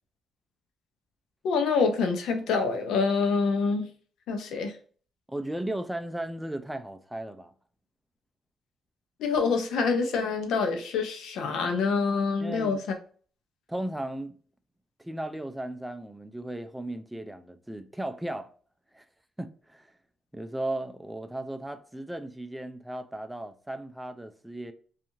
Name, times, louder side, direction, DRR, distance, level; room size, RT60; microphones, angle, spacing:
voice 1, 1.4-3.9 4.3-4.7 9.2-12.8, left 4 dB, 80° left, 0.6 m, -26 dB
voice 2, 5.3-7.5 12.4-12.8 13.7-14.4 15.0-18.5 18.9-19.0 19.4-19.9 20.3-24.7, right 1 dB, 5° right, 0.3 m, -36 dB
2.7 x 2.4 x 2.5 m
cardioid pair, 90°, 0 cm